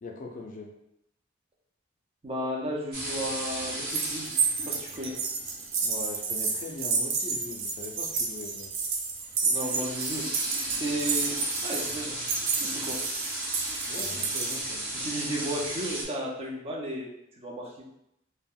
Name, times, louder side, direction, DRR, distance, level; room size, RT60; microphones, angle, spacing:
voice 1, 0.0-0.7 5.8-8.7 13.9-15.0, left 3 dB, 45° left, 1 dB, 0.4 m, -41 dB
voice 2, 2.2-4.3 4.7-5.2 9.4-10.3 10.5-11.4 11.6-12.2 12.5-13.0 14.9-17.7, equal, 30° right, -2 dB, 0.5 m, -34 dB
sound 1, 2.9-16.0, right 1 dB, 50° right, 0.9 m, -36 dB
sound 2, 3.9-14.6, right 4 dB, 90° right, 0.5 m, -30 dB
2.4 x 2.1 x 3.5 m, 0.80 s
head